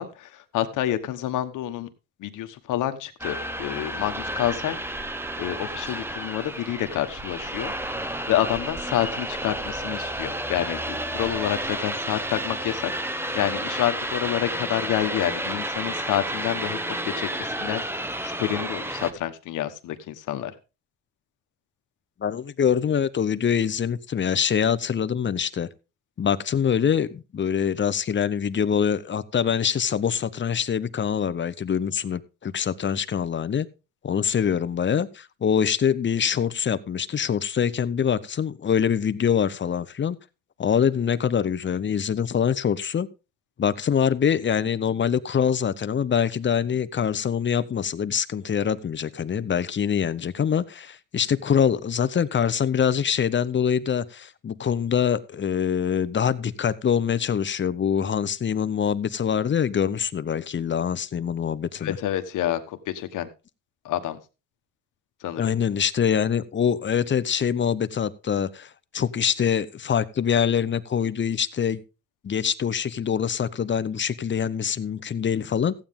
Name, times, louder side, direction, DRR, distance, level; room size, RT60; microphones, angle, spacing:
voice 1, 0.0-1.9 2.2-4.8 5.4-7.7 8.3-16.8 17.0-20.5 61.8-63.3 63.8-64.2 65.2-65.5, left 12 dB, 85° left, 9 dB, 1.3 m, -28 dB
sound 1, 3.2-19.1, right 1 dB, 10° right, 1.2 m, -31 dB
voice 2, 22.2-25.7 26.2-33.7 34.0-40.2 40.6-43.1 43.6-62.0 65.4-71.8 72.2-75.7, left 7 dB, 40° left, 15 dB, 0.9 m, -24 dB
15.0 x 8.8 x 3.7 m, 0.30 s
cardioid pair, 90°, 30 cm